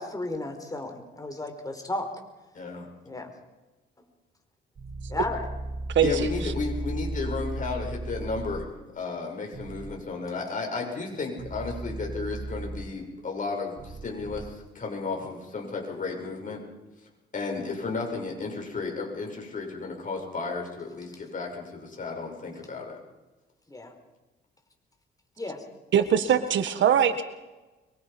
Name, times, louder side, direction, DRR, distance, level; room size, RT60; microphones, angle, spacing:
voice 1, 0.0-2.1 3.0-3.3 5.1-5.4 23.7-23.9 25.4-25.6, left 2 dB, 20° left, 5 dB, 4.8 m, -33 dB
voice 2, 2.5-2.9 6.0-16.6 17.3-23.0, left 4 dB, 40° left, 1 dB, 7.2 m, -33 dB
sound 1, 4.8-8.6 9.5-9.9 11.4-12.8 13.8-14.4, right 2 dB, 35° right, 7.7 m, -35 dB
voice 3, 6.0-6.3 25.9-27.2, right 8 dB, 70° right, 10 dB, 1.7 m, -22 dB
25.0 x 23.5 x 5.4 m, 1.1 s
cardioid pair, 90°, 20 cm